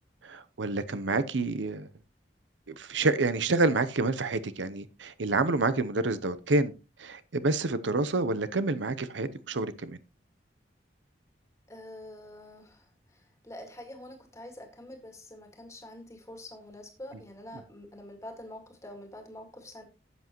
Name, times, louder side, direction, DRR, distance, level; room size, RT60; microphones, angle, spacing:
voice 1, 0.2-1.9 2.7-6.7 7.0-10.0, right 3 dB, 90° right, 0.8 m, -28 dB
voice 2, 11.7-12.9 13.1-19.8, left 1 dB, 15° left, 1.9 m, -46 dB
12.5 x 8.1 x 3.0 m
head